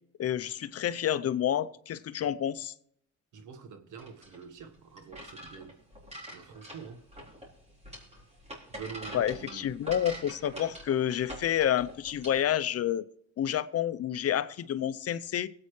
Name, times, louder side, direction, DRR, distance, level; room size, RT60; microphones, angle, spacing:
voice 1, 0.2-2.7 9.1-13.0 13.4-15.5, left 10 dB, 55° left, 0.6 m, -29 dB
voice 2, 3.3-5.8 6.3-7.0 8.7-9.7 10.5-10.7, right 6 dB, 80° right, 1.4 m, -46 dB
sound 1, 3.9-12.4, equal, 20° right, 4.1 m, -45 dB
23.5 x 8.5 x 3.2 m
cardioid pair, 90°, 30 cm